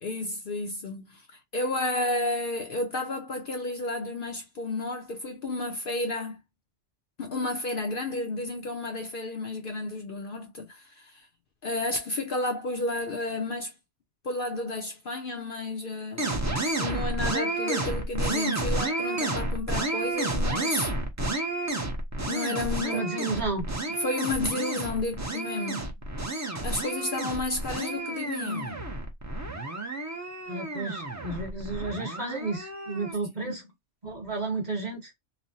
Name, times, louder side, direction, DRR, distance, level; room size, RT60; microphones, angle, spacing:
voice 1, 0.0-6.4 7.2-11.3 11.6-13.7 14.2-16.3 16.8-20.9 22.3-23.0 23.9-25.9 26.6-28.8 33.4-33.5, left 2 dB, 55° left, 0.7 m, -32 dB
sound 1, 16.2-33.1, right 2 dB, 20° right, 0.5 m, -31 dB
voice 2, 22.8-23.7 30.5-33.6 34.0-35.1, right 3 dB, 40° right, 1.2 m, -32 dB
3.2 x 2.1 x 2.7 m
omnidirectional pair, 1.2 m